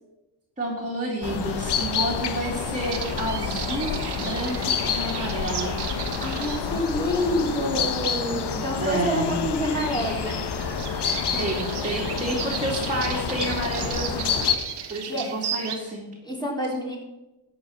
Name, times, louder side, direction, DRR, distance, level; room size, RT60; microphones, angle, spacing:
voice 1, 0.6-5.8 8.8-9.4 11.3-14.3 14.9-16.0, right 1 dB, 15° right, -3 dB, 3.0 m, -30 dB
sound 1, 1.2-14.6, left 6 dB, 55° left, 1.4 m, -28 dB
sound 2, 2.8-15.8, right 8 dB, 55° right, 1.5 m, -36 dB
voice 2, 6.2-10.4 15.1-15.3 16.2-17.0, equal, 10° left, -2 dB, 4.0 m, -27 dB
13.5 x 8.3 x 5.9 m, 1.0 s
cardioid pair, 105°, 47 cm